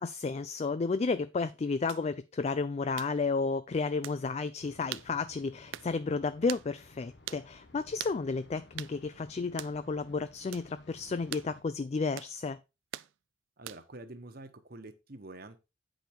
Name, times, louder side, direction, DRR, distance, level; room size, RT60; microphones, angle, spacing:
voice 1, 0.0-12.6, left 4 dB, 35° left, 0.3 m, -32 dB
sound 1, 1.9-2.1 3.0-3.2 4.0-4.2 4.9-5.1 5.7-5.9 6.5-6.7 7.3-7.5 8.0-8.2 8.8-9.0 9.6-9.8 10.5-10.7 11.3-11.5 12.2-12.4 12.9-13.1 13.7-14.0, right 13 dB, 75° right, 0.4 m, -41 dB
sound 2, 4.6-11.6, left 2 dB, 60° left, 1.1 m, -57 dB
voice 2, 13.6-15.6, right 2 dB, 50° right, 1.2 m, -47 dB
9.1 x 5.2 x 4.4 m
head